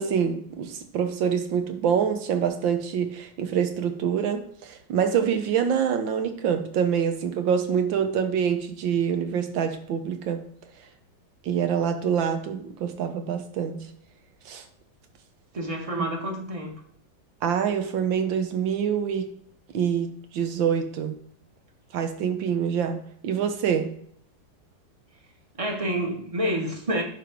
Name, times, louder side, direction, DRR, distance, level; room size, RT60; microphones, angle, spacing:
voice 1, 0.0-10.4 11.4-13.8 14.4-14.6 15.9-16.1 17.4-19.3 19.7-21.1 21.9-23.9, right 7 dB, 75° right, 7 dB, 1.7 m, -26 dB
voice 2, 15.5-16.7 25.6-27.0, right 1 dB, 20° right, 2 dB, 1.1 m, -28 dB
10.0 x 3.5 x 5.9 m, 0.63 s
omnidirectional pair, 2.1 m